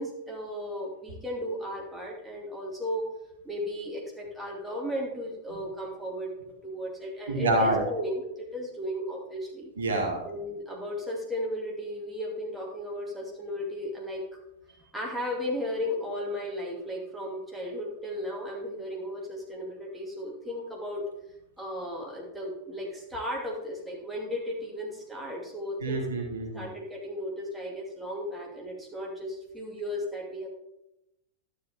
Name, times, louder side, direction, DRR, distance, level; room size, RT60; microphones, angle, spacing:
voice 1, 0.0-3.1 3.4-6.3 6.6-9.7 10.2-14.2 14.9-21.0 21.6-26.2 26.5-30.5, equal, 5° right, -3 dB, 2.6 m, -35 dB
voice 2, 7.3-7.9 9.8-10.2 25.8-26.7, right 2 dB, 70° right, 1 dB, 1.8 m, -27 dB
12.0 x 7.8 x 3.6 m, 0.87 s
figure-of-eight pair, 90°, 0 cm